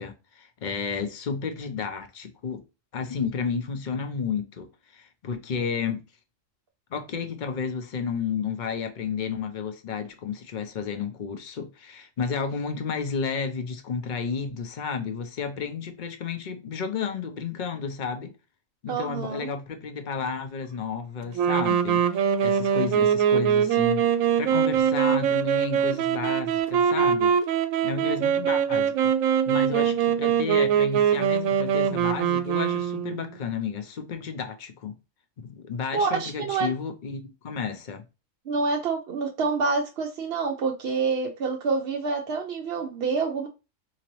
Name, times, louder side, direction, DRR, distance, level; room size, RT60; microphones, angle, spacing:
voice 1, 0.0-2.6 2.9-6.0 6.9-18.3 18.8-24.0 24.4-27.3 27.8-29.1 29.5-34.9 35.4-38.0, left 5 dB, 50° left, 0.6 m, -32 dB
voice 2, 18.9-19.5 35.9-36.7 38.5-43.5, right 4 dB, 60° right, 0.7 m, -27 dB
sound 1, 21.3-33.2, right 8 dB, 85° right, 1.0 m, -23 dB
3.9 x 2.9 x 3.0 m
omnidirectional pair, 1.4 m